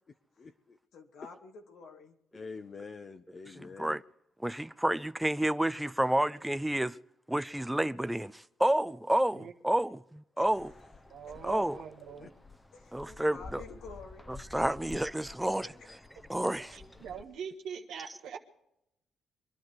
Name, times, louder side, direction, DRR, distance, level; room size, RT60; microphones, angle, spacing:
voice 1, 0.4-0.8 2.3-4.0 12.2-12.3 14.5-14.7, left 4 dB, 40° left, 0.8 m, -46 dB
voice 2, 0.9-2.2 10.3-10.6 11.3-11.4 12.7-14.3 15.6-15.9, left 4 dB, 75° left, 2.2 m, -50 dB
voice 3, 3.6-4.0 4.4-7.0 7.3-10.7 11.4-11.8 12.9-13.6 14.3-15.7 16.3-16.8, right 1 dB, 5° right, 0.5 m, -30 dB
sound 1, 10.4-17.2, left 3 dB, 15° left, 0.9 m, -51 dB
voice 4, 11.1-12.3 16.7-18.4, right 7 dB, 85° right, 1.5 m, -43 dB
23.5 x 11.5 x 4.8 m
cardioid pair, 90°, 0 cm